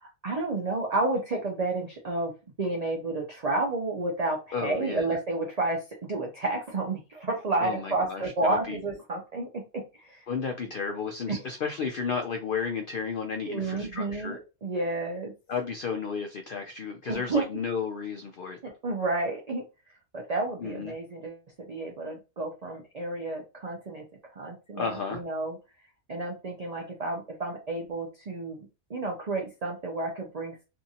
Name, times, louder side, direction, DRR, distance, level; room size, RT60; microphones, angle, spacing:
voice 1, 0.0-2.3 2.6-10.2 11.3-11.4 13.5-15.3 17.1-17.5 18.6-19.7 20.1-21.4 21.7-24.0 24.4-25.6 26.1-30.6, right 2 dB, 60° right, 0.4 m, -31 dB
voice 2, 4.5-5.2 7.6-8.8 10.3-14.4 15.5-18.6 20.6-20.9 24.7-25.2, left 5 dB, 80° left, 0.4 m, -33 dB
2.7 x 2.5 x 2.7 m
omnidirectional pair, 1.5 m